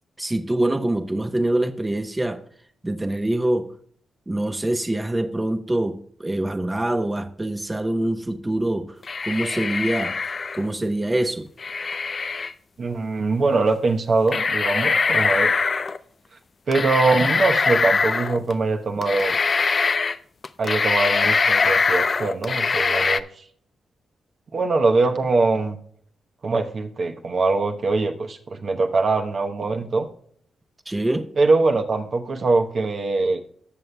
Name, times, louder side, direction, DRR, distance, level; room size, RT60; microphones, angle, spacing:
voice 1, 0.2-2.4 2.8-3.7 4.3-9.0 9.2-10.2 10.5-11.5 30.9-31.3, right 1 dB, 20° right, 8 dB, 0.8 m, -24 dB
sound 1, 9.0-10.7 11.6-12.5 13.7-13.8 14.3-16.0 16.7-18.5 19.0-20.2 20.4-23.2, left 4 dB, 50° left, 0.4 m, -22 dB
voice 2, 12.8-15.5 16.7-19.3 20.6-23.2 24.5-25.8 26.4-30.1 31.4-33.4, right 3 dB, 55° right, 4 dB, 1.0 m, -22 dB
18.5 x 6.6 x 2.2 m, 0.62 s
supercardioid pair, 50°, 0 cm